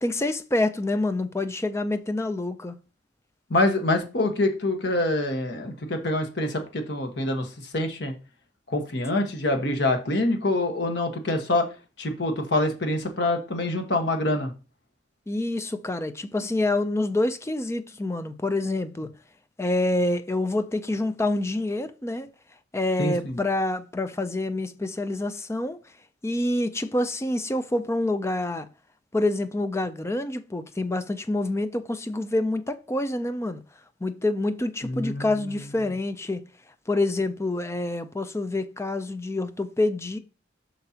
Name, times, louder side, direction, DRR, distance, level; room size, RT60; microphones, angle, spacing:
voice 1, 0.0-2.8 15.3-19.1 19.6-22.3 22.7-25.8 26.2-28.7 29.1-33.6 34.0-36.4 36.9-40.2, left 2 dB, 15° left, 0.5 m, -27 dB
voice 2, 3.5-8.1 8.7-11.6 12.0-14.5 23.0-23.4 34.8-35.6, left 1 dB, 65° left, 1.4 m, -25 dB
7.6 x 5.8 x 2.9 m
head